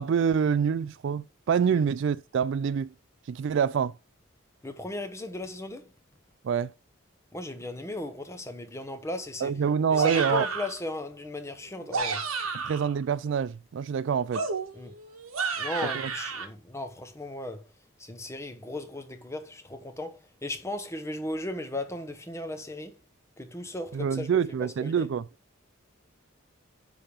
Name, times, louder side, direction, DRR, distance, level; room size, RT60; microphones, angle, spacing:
voice 1, 0.0-2.9 3.3-3.9 6.4-6.7 9.4-10.5 12.5-14.5 16.0-16.1 23.9-25.3, right 7 dB, 60° right, 0.3 m, -26 dB
voice 2, 4.6-5.9 7.3-9.6 9.9-12.2 14.7-14.9 15.6-17.7 18.0-23.0 23.4-24.3 24.6-25.1, left 1 dB, 15° left, 1.0 m, -36 dB
sound 1, 9.9-10.8 11.7-12.9 14.3-16.5, right 4 dB, 90° right, 1.4 m, -31 dB
10.0 x 3.5 x 5.0 m
head